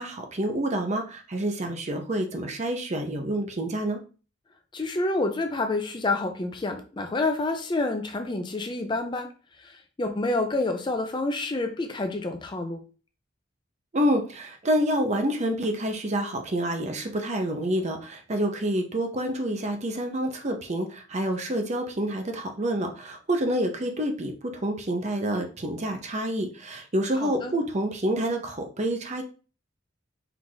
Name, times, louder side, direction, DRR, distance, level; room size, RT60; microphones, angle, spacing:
voice 1, 0.0-4.0 13.9-29.2, right 1 dB, 35° right, 4 dB, 0.6 m, -28 dB
voice 2, 4.7-9.3 9.6-12.8 27.2-27.5, left 2 dB, 25° left, 5 dB, 0.4 m, -28 dB
4.6 x 2.5 x 3.8 m, 0.36 s
head